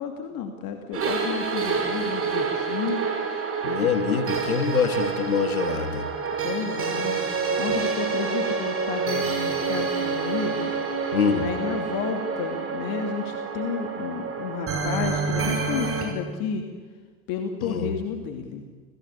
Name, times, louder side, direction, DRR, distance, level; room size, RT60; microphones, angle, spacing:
voice 1, 0.0-3.0 6.4-10.7 11.0-16.6 17.3-18.6, left 6 dB, 55° left, 5 dB, 2.7 m, -32 dB
sound 1, 0.9-16.0, right 5 dB, 30° right, 6.5 m, -28 dB
voice 2, 3.6-6.1 11.1-11.5 17.6-17.9, left 6 dB, 80° left, 10 dB, 2.2 m, -24 dB
28.0 x 17.0 x 8.3 m, 1.4 s
figure-of-eight pair, 75°, 42 cm